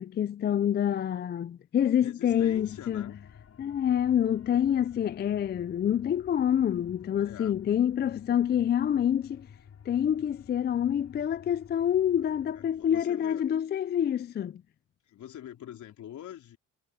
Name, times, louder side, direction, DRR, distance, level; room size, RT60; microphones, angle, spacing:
voice 1, 0.0-3.1 3.6-9.5 9.9-14.6, left 9 dB, 35° left, 0.4 m, -27 dB
voice 2, 2.0-3.2 7.2-7.6 12.2-13.4 15.0-16.6, left 11 dB, 75° left, 4.3 m, -45 dB
sound 1, 2.3-13.0, left 7 dB, 55° left, 5.3 m, -53 dB
cardioid pair, 90°, 30 cm